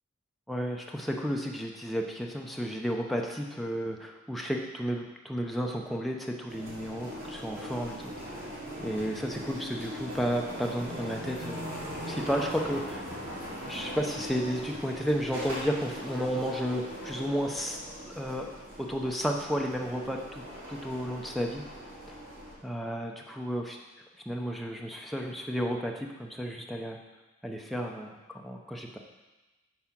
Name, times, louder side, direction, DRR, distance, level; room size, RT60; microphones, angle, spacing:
voice 1, 0.5-8.5 8.8-11.6 12.1-13.1 13.6-17.8 18.1-18.5 18.8-20.4 20.7-21.6 22.6-23.8 24.3-27.0 27.4-29.0, equal, ahead, 0 dB, 0.7 m, -32 dB
sound 1, 6.5-22.5, equal, 85° right, 3.2 m, -40 dB
8.5 x 4.7 x 6.0 m, 1.1 s
head